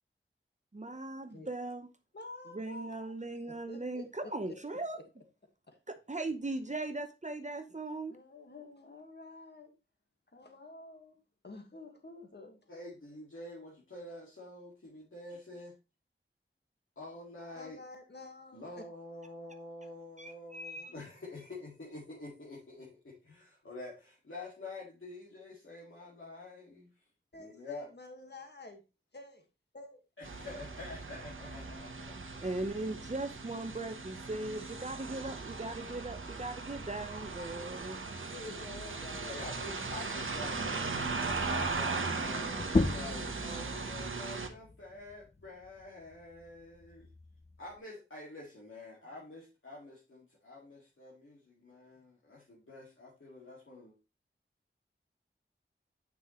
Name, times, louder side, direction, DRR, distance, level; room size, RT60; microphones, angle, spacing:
voice 1, 0.7-1.9 2.5-5.0 5.9-8.2 20.2-20.9 32.4-38.0, right 2 dB, 35° right, 0.8 m, -39 dB
voice 2, 2.1-3.2 3.7-4.6 5.7-5.8 8.1-9.7 10.3-11.2 11.4-12.6 17.6-18.8 27.3-28.8 29.1-29.4 29.7-30.0 38.3-39.4, left 2 dB, 50° left, 1.6 m, -49 dB
voice 3, 12.7-15.7 17.0-17.8 18.5-26.9 27.3-27.9 30.2-32.2 39.3-47.1 47.6-54.0, left 2 dB, 70° left, 2.2 m, -47 dB
sound 1, 30.2-44.5, right 4 dB, 70° right, 1.0 m, -38 dB
sound 2, 42.6-47.8, left 2 dB, 30° left, 0.7 m, -36 dB
9.1 x 5.8 x 3.1 m
wide cardioid pair, 55°, 21 cm